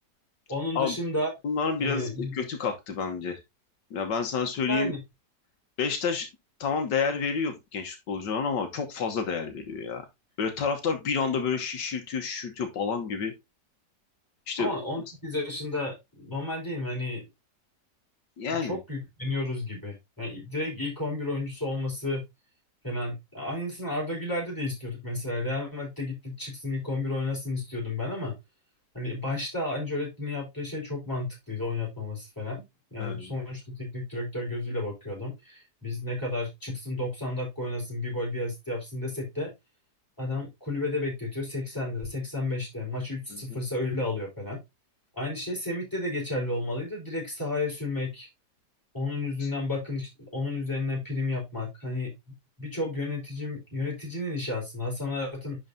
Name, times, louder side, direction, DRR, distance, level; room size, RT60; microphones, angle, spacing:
voice 1, 0.5-1.3 1.8-2.3 4.7-5.0 14.6-17.2 18.6-22.2 22.8-28.4 28.9-32.6 32.9-39.5 40.2-44.6 45.2-48.3 48.9-52.1 52.6-55.6, left 2 dB, 10° left, 4.5 m, -32 dB
voice 2, 1.4-3.4 3.9-4.9 5.8-6.3 6.6-10.1 10.4-13.3 14.5-14.7 18.4-18.8 33.0-33.3 43.3-43.4 49.4-49.5, left 5 dB, 85° left, 1.8 m, -29 dB
10.5 x 4.8 x 2.7 m
omnidirectional pair, 1.9 m